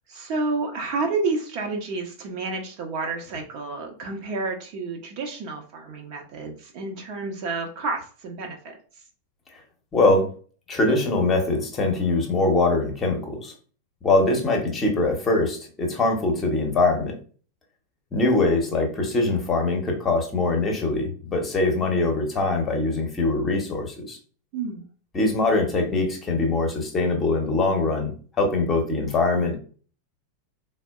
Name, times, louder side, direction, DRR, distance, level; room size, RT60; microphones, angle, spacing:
voice 1, 0.1-8.8 24.5-24.8, right 3 dB, 45° right, 2 dB, 0.8 m, -30 dB
voice 2, 9.9-10.3 10.7-13.5 14.0-17.1 18.1-24.2 25.1-29.6, left 2 dB, 20° left, 2 dB, 0.9 m, -23 dB
4.2 x 2.1 x 2.3 m, 0.41 s
figure-of-eight pair, 90°, 0 cm